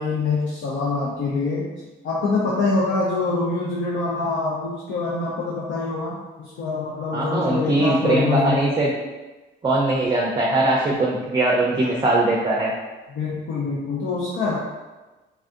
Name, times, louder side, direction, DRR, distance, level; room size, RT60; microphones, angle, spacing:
voice 1, 0.0-1.7 2.0-8.7 10.9-11.0 13.1-14.6, left 3 dB, 70° left, -5 dB, 0.6 m, -25 dB
voice 2, 7.1-8.9 9.6-12.7, right 2 dB, 25° right, -3 dB, 0.5 m, -21 dB
3.4 x 2.3 x 2.6 m, 1.2 s
cardioid pair, 90°, 20 cm